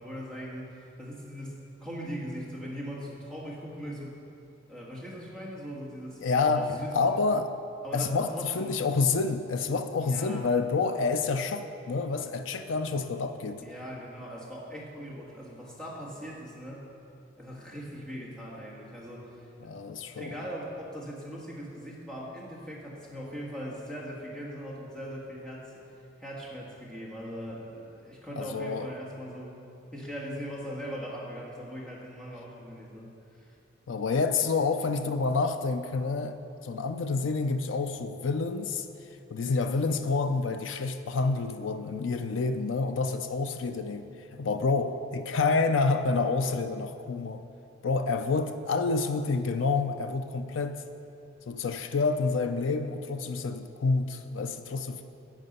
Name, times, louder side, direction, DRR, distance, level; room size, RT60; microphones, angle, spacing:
voice 1, 0.0-4.2 4.7-7.1 7.8-8.8 10.0-10.5 13.5-16.8 17.4-19.3 20.2-25.8 26.2-29.6 29.9-33.5, equal, 5° left, -5 dB, 1.6 m, -40 dB
voice 2, 6.2-7.5 7.9-13.6 19.6-20.4 28.4-28.9 33.9-36.4 36.6-38.9 39.3-47.4 47.8-50.8 51.5-55.0, left 4 dB, 75° left, 8 dB, 0.5 m, -28 dB
11.0 x 7.5 x 5.4 m, 2.7 s
head